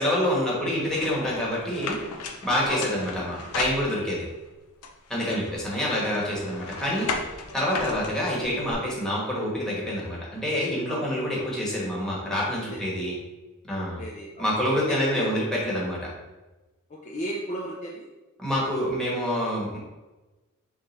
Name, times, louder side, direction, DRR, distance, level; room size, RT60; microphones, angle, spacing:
voice 1, 0.0-2.0 2.4-4.2 5.1-7.1 7.5-13.1 13.6-14.0 14.4-16.0 18.4-19.8, equal, 5° left, -6 dB, 1.3 m, -27 dB
sound 1, 1.0-4.3 4.8-8.7, left 4 dB, 85° left, 0.6 m, -36 dB
voice 2, 2.7-3.0 5.2-5.5 10.9-11.2 12.7-13.0 14.0-14.5 14.9-15.3 16.9-18.1, equal, 35° left, -2 dB, 0.5 m, -35 dB
3.7 x 3.5 x 4.1 m, 1.1 s
head